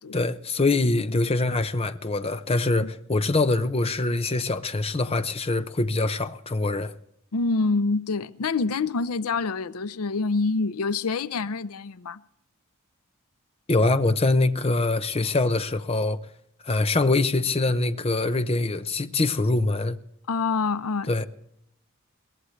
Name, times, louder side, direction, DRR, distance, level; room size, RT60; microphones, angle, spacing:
voice 1, 0.1-6.9 13.7-16.2 16.6-20.0 21.1-21.3, left 2 dB, 25° left, 0.7 m, -24 dB
voice 2, 7.3-12.2 20.3-21.1, left 4 dB, 85° left, 0.6 m, -26 dB
22.5 x 17.5 x 3.3 m
head